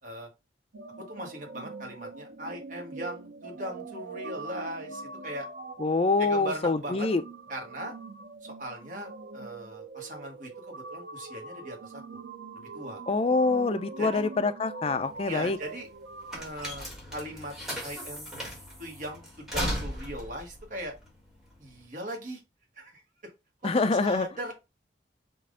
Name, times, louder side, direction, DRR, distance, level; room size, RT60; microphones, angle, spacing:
sound 1, 0.7-16.4, right 3 dB, 65° right, 0.5 m, -43 dB
voice 1, 1.0-5.5 6.2-7.1 7.5-7.9 8.4-12.2 12.5-13.0 14.0-14.2 15.2-15.9 16.3-17.5 17.8-18.3 18.8-20.9 21.6-22.4 22.8-23.3 23.6-24.5, right 1 dB, 50° right, 1.3 m, -39 dB
voice 2, 5.8-7.2 13.1-15.6 23.6-24.3, left 3 dB, 35° left, 0.4 m, -25 dB
sound 2, 15.0-21.8, equal, ahead, 1.6 m, -37 dB
5.3 x 2.5 x 3.6 m
head